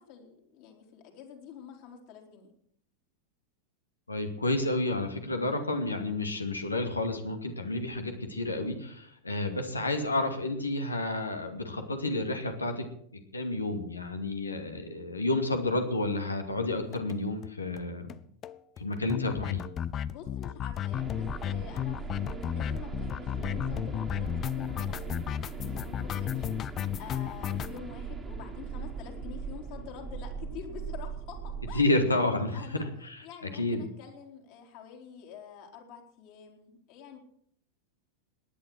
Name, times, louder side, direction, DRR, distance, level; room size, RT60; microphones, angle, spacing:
voice 1, 0.0-2.5 20.0-26.7 27.0-31.9 32.5-32.9 33.2-37.2, left 7 dB, 45° left, 2 dB, 4.0 m, -47 dB
voice 2, 4.1-12.8 13.1-18.1 18.8-19.6 31.7-32.6 33.0-33.2 33.5-33.8, left 2 dB, 80° left, 5 dB, 2.4 m, -30 dB
sound 1, 16.9-17.1 17.4-17.5 17.8-17.9 18.1-18.2 18.4-27.8, left 10 dB, 30° left, 0.6 m, -33 dB
sound 2, 20.9-31.8, right 5 dB, 15° right, 2.2 m, -40 dB
18.5 x 11.0 x 6.2 m, 0.66 s
figure-of-eight pair, 90°, 0 cm